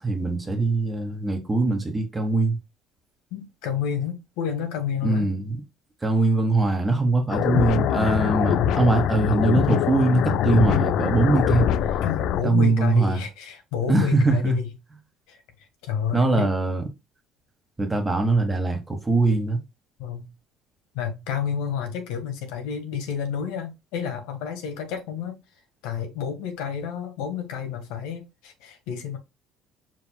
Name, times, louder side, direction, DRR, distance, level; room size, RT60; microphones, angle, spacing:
voice 1, 0.0-2.6 5.0-5.6 6.0-11.7 12.4-13.2 13.9-14.6 16.1-16.9 17.8-19.6, right 3 dB, 15° right, 1.4 m, -22 dB
voice 2, 3.3-5.3 12.0-14.7 15.3-15.4 15.8-16.5 20.0-20.3 20.9-25.4 25.8-29.2, left 7 dB, 85° left, 1.6 m, -30 dB
sound 1, 7.3-12.4, left 9 dB, 65° left, 0.4 m, -23 dB
5.0 x 4.6 x 2.3 m
cardioid pair, 120°, 0 cm